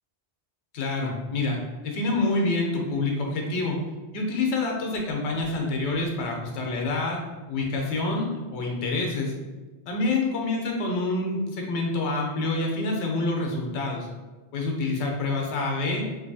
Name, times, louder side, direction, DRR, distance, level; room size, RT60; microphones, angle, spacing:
voice 1, 0.7-1.6 1.8-3.8 4.1-7.2 7.5-9.3 9.9-14.1 14.5-16.1, left 2 dB, 80° left, 0 dB, 0.9 m, -27 dB
2.6 x 2.6 x 2.6 m, 1.2 s
omnidirectional pair, 1.1 m